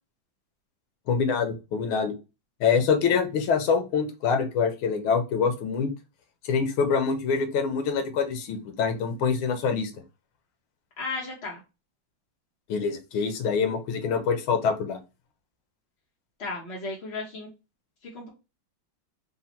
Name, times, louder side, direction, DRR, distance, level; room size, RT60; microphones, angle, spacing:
voice 1, 1.1-2.1 2.6-5.9 6.4-9.9 12.7-15.0, left 5 dB, 85° left, 7 dB, 1.6 m, -25 dB
voice 2, 11.0-11.6 16.4-17.5 18.1-18.3, left 3 dB, 45° left, -2 dB, 0.9 m, -34 dB
4.1 x 2.1 x 4.1 m, 0.28 s
omnidirectional pair, 2.2 m